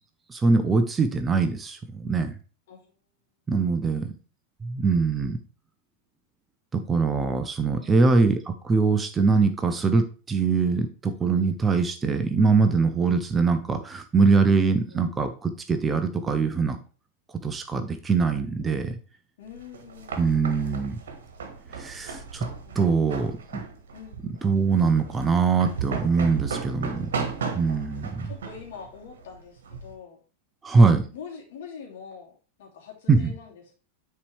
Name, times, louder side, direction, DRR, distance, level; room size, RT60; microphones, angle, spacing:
voice 1, 0.3-2.3 3.5-4.1 4.6-5.4 6.7-16.8 17.4-18.9 20.2-21.0 21.7-22.5 22.7-23.6 24.4-27.1 27.5-28.3 30.6-31.0 33.1-33.3, right 4 dB, 15° right, 8 dB, 0.8 m, -23 dB
voice 2, 7.7-8.2 14.4-15.1 19.4-20.5 22.6-23.6 23.9-24.3 28.2-30.2 31.1-33.7, left 7 dB, 55° left, -1 dB, 2.7 m, -45 dB
sound 1, 19.5-29.9, right 5 dB, 60° right, 1.5 m, -36 dB
9.8 x 4.6 x 3.4 m, 0.36 s
figure-of-eight pair, 90°, 0 cm